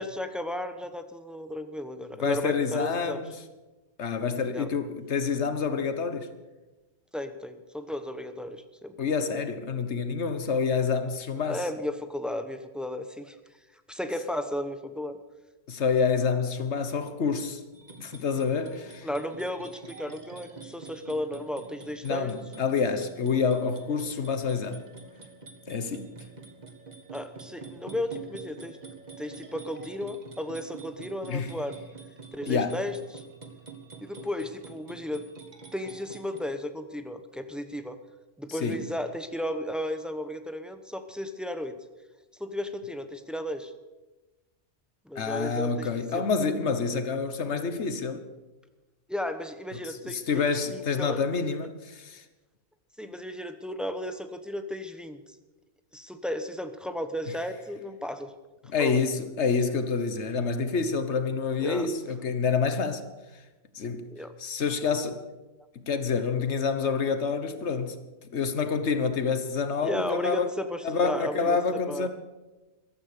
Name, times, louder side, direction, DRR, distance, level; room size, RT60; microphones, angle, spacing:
voice 1, 0.0-3.2 4.5-4.7 7.1-8.9 11.4-13.4 13.9-15.2 19.0-22.3 27.1-28.8 29.2-31.8 32.3-33.2 34.0-35.2 35.7-38.0 38.4-41.8 42.4-43.7 45.1-46.2 49.1-51.2 53.0-55.2 55.9-58.3 58.8-59.0 61.6-61.9 64.1-64.3 69.8-71.6 71.9-72.1, left 1 dB, ahead, 0.9 m, -34 dB
voice 2, 2.2-3.3 4.0-6.3 9.0-11.6 15.7-17.6 18.0-19.1 22.0-24.8 25.7-26.1 31.3-31.5 32.5-32.8 38.6-38.8 45.1-48.2 49.8-52.2 58.7-63.0 63.7-64.1 64.4-65.2 65.9-68.0 68.3-70.5 70.8-72.1, left 5 dB, 75° left, 1.4 m, -27 dB
sound 1, 17.7-36.4, right 4 dB, 40° right, 1.7 m, -47 dB
14.5 x 13.0 x 6.6 m
omnidirectional pair, 1.2 m